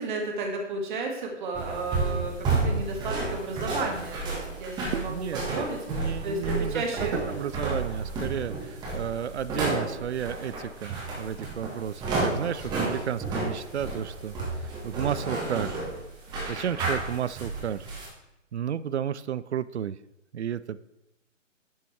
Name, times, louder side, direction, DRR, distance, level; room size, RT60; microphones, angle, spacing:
voice 1, 0.0-7.1, right 3 dB, 40° right, 2 dB, 1.9 m, -33 dB
sound 1, 1.5-18.1, right 3 dB, 10° right, 1.7 m, -31 dB
voice 2, 4.9-14.4 14.8-15.8 16.5-17.9 18.5-20.0 20.3-20.8, right 9 dB, 60° right, 17 dB, 0.5 m, -32 dB
10.5 x 5.8 x 4.4 m, 0.91 s
figure-of-eight pair, 145°, 38 cm